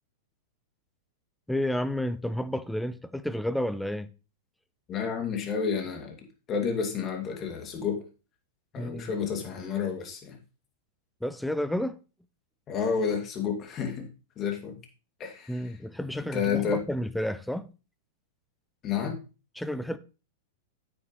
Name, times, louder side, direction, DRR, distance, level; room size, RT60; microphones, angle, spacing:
voice 1, 1.5-4.1 8.8-9.1 11.2-12.0 15.5-17.7 19.6-20.0, left 1 dB, 5° left, 0.7 m, -31 dB
voice 2, 4.9-6.2 6.5-8.0 8.7-10.4 12.7-14.1 14.4-14.8 15.2-15.6 16.2-16.8 18.8-19.2, left 6 dB, 30° left, 2.5 m, -30 dB
9.1 x 9.1 x 3.2 m
hypercardioid pair, 105°, 0 cm